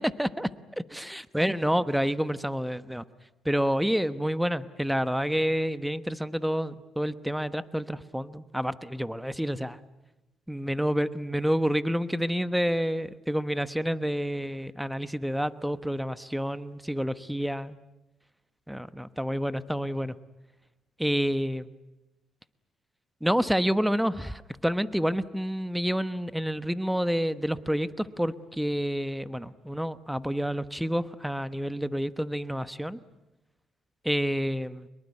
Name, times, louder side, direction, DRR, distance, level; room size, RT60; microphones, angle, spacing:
voice 1, 0.2-0.5 0.8-3.0 3.4-9.8 10.5-17.8 18.7-20.2 21.0-21.6 23.2-33.0 34.0-34.9, equal, 5° right, 14 dB, 1.0 m, -28 dB
24.0 x 22.5 x 9.6 m, 0.96 s
cardioid pair, 90°, 0 cm